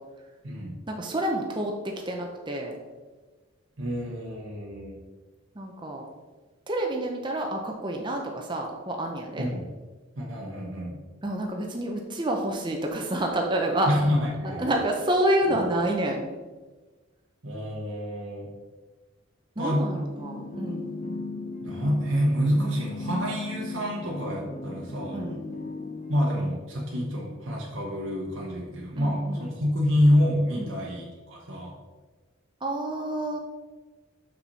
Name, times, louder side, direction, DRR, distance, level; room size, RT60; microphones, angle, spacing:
voice 1, 0.9-2.7 5.6-6.0 6.7-9.5 11.2-13.9 14.4-16.3 19.6-20.9 25.1-25.4 28.9-29.4 30.6-30.7 32.6-33.4, right 1 dB, 20° right, 1 dB, 0.7 m, -28 dB
voice 2, 3.8-5.0 9.4-9.6 10.2-11.0 13.9-14.7 15.5-15.6 17.4-18.5 19.6-19.8 21.6-25.2 26.1-31.7, equal, 70° right, -3 dB, 1.1 m, -27 dB
sound 1, 20.2-26.6, left 2 dB, 35° left, 0.7 m, -36 dB
6.0 x 5.8 x 4.1 m, 1.3 s
head